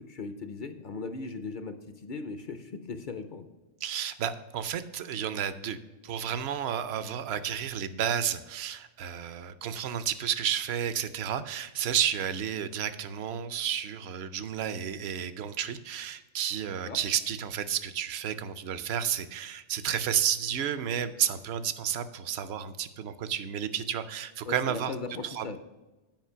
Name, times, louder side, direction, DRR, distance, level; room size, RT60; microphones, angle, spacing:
voice 1, 0.0-3.5 16.8-17.0 24.5-25.6, left 4 dB, 55° left, 8 dB, 0.6 m, -38 dB
voice 2, 3.8-5.8 6.0-24.9 25.2-25.6, right 9 dB, 65° right, 13 dB, 0.8 m, -31 dB
9.2 x 5.0 x 5.6 m, 1.1 s
omnidirectional pair, 1.2 m